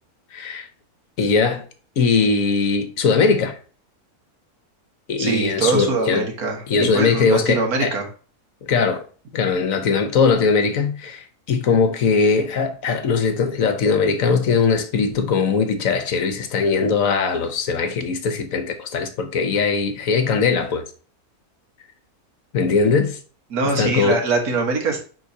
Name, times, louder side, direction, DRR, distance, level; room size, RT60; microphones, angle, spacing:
voice 1, 0.3-0.7 1.2-1.6 2.0-3.6 5.1-6.2 6.7-7.9 8.6-9.1 9.3-20.8 22.5-23.2 23.8-24.2, left 5 dB, 65° left, 1.2 m, -20 dB
voice 2, 5.2-8.1 23.5-25.0, right 3 dB, 75° right, 1.9 m, -23 dB
9.5 x 3.9 x 2.8 m
omnidirectional pair, 1.6 m